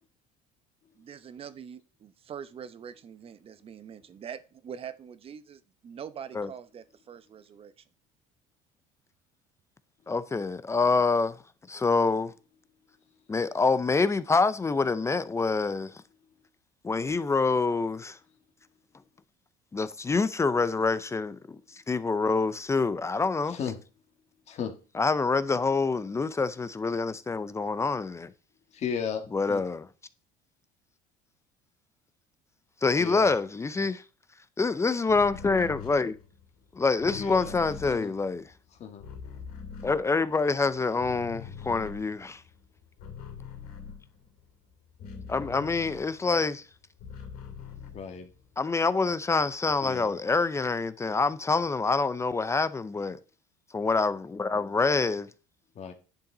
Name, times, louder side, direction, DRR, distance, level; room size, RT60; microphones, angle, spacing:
voice 1, 1.0-7.8, right 8 dB, 35° right, 0.8 m, -44 dB
voice 2, 10.1-11.4 11.7-12.3 13.3-16.0 16.8-18.2 19.7-23.6 25.0-28.3 29.3-29.9 32.8-34.0 34.6-36.2 36.7-38.4 39.8-42.4 45.3-46.7 48.6-53.2 53.7-55.3, left 4 dB, 20° left, 0.5 m, -26 dB
voice 3, 23.5-23.8 24.5-24.7 28.7-29.6 33.0-33.3 37.1-37.5 37.8-38.1 38.8-39.0 47.9-48.3 49.8-50.2 55.7-55.9, left 7 dB, 45° left, 1.7 m, -35 dB
sound 1, 35.1-40.7 40.9-46.4 46.7-48.6, left 6 dB, 75° left, 2.8 m, -43 dB
10.5 x 5.8 x 3.9 m
cardioid pair, 110°, 16 cm